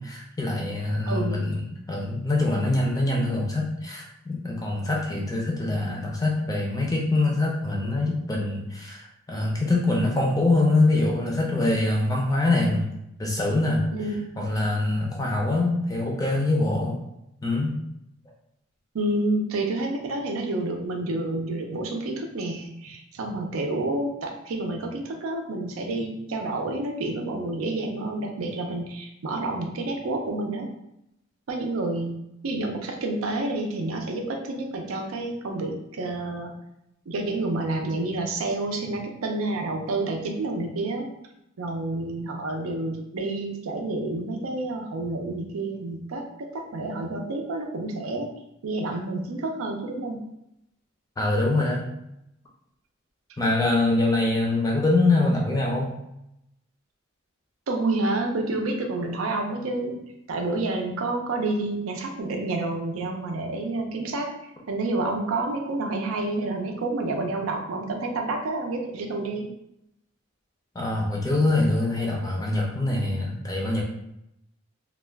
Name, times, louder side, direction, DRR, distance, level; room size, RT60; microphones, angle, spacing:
voice 1, 0.0-12.9 13.2-13.9 14.4-17.0 17.4-17.8 51.2-51.9 53.4-55.9 70.7-73.8, left 2 dB, 15° left, -2 dB, 0.4 m, -24 dB
voice 2, 1.1-1.5 13.9-14.4 18.9-30.7 31.5-32.1 32.4-36.5 37.1-41.1 41.6-48.3 48.6-50.2 57.7-64.3 64.7-69.5, right 2 dB, 85° right, 3 dB, 0.5 m, -29 dB
2.3 x 2.2 x 3.3 m, 0.82 s
head